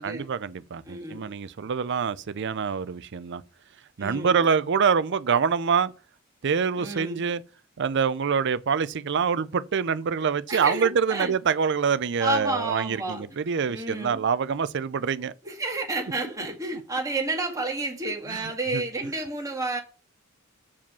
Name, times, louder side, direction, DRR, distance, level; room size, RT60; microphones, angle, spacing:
voice 1, 0.0-3.4 4.0-5.9 6.4-7.4 7.8-15.3 18.1-18.4 18.7-18.8, right 6 dB, 60° right, 0.5 m, -25 dB
voice 2, 0.8-1.3 4.0-4.4 6.8-7.2 10.5-11.3 12.2-13.2 13.7-14.2 15.4-19.8, right 2 dB, 15° right, 1.9 m, -30 dB
7.1 x 4.9 x 6.1 m
head